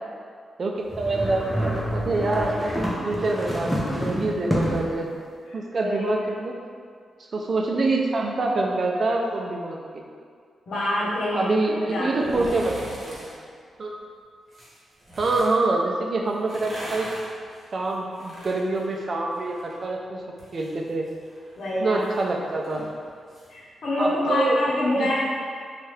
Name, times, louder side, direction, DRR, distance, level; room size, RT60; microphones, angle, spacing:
voice 1, 0.6-1.4 1.9-5.1 5.5-6.5 7.3-10.0 11.3-13.3 13.8-14.0 15.2-17.1 17.7-20.2 20.5-21.0 21.8-22.8 24.0-24.6 25.0-25.1, right 2 dB, 50° right, 0 dB, 0.4 m, -26 dB
sound 1, 0.9-5.0, equal, 5° right, 0.6 m, -27 dB
voice 2, 5.5-6.1 10.7-12.6 21.6-22.0 23.5-25.1, left 1 dB, 70° left, -7 dB, 0.9 m, -26 dB
sound 2, 12.1-13.3 14.5-15.6 16.3-19.8 20.1-23.5 23.8-23.9, right 1 dB, 35° right, 1.1 m, -40 dB
2.7 x 2.4 x 3.2 m, 2.1 s
cardioid pair, 60°, 0 cm